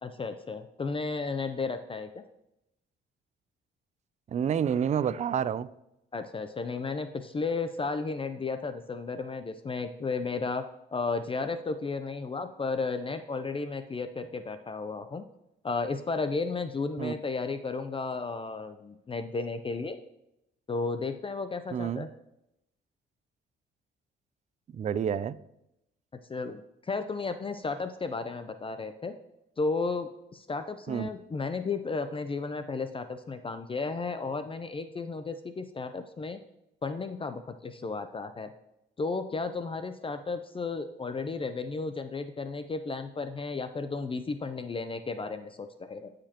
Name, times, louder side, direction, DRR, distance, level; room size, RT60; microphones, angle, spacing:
voice 1, 0.0-2.2 6.1-10.6 10.9-15.2 15.6-20.0 20.7-22.1 26.3-29.1 29.6-36.4 36.8-38.5 39.0-46.1, left 4 dB, 25° left, 9 dB, 0.5 m, -33 dB
voice 2, 4.3-5.7 17.0-17.1 21.7-22.1 24.7-25.4 30.9-31.1, right 8 dB, 35° right, 16 dB, 0.4 m, -29 dB
14.5 x 5.1 x 2.9 m, 0.84 s
cardioid pair, 90°, 20 cm